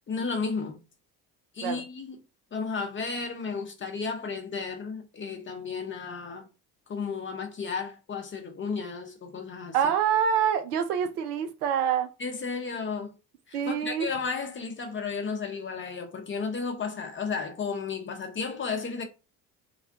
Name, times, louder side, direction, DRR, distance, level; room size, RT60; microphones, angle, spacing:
voice 1, 0.1-0.8 1.5-2.2 2.5-6.5 6.9-9.9 12.2-13.1 13.5-19.0, left 5 dB, 25° left, 0.7 m, -33 dB
voice 2, 9.7-12.1 13.5-14.1, right 8 dB, 70° right, 0.5 m, -26 dB
2.4 x 2.1 x 2.7 m
figure-of-eight pair, 50°, 48 cm